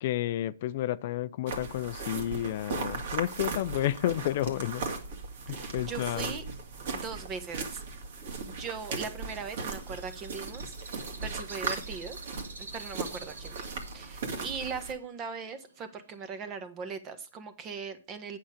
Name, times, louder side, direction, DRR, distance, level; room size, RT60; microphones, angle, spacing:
voice 1, 0.0-4.8 5.5-6.3, left 13 dB, 50° left, 0.5 m, -31 dB
sound 1, 1.5-14.9, right 4 dB, 55° right, 2.5 m, -37 dB
voice 2, 5.5-6.4 6.9-7.8 8.5-12.2 12.6-13.7 13.9-18.4, right 5 dB, 25° right, 1.4 m, -39 dB
Bird, 9.3-16.5, right 3 dB, 80° right, 1.9 m, -48 dB
8.7 x 7.1 x 5.0 m
hypercardioid pair, 135°, 0 cm